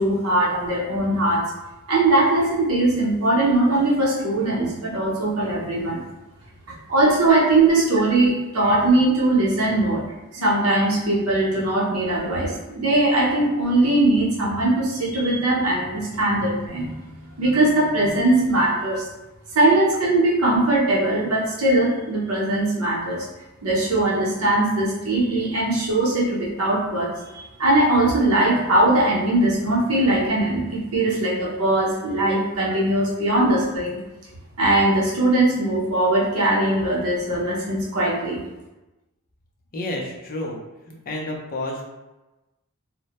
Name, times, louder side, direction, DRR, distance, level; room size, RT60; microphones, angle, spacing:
voice 1, 0.0-1.4 1.9-6.0 6.9-10.0 10.3-16.9 17.4-19.1 19.5-23.3 23.6-34.0 34.6-38.4, right 2 dB, 75° right, -4 dB, 0.7 m, -20 dB
voice 2, 39.7-40.6 40.9-41.8, left 1 dB, 40° left, -1 dB, 0.5 m, -30 dB
2.1 x 2.1 x 2.8 m, 1.0 s
head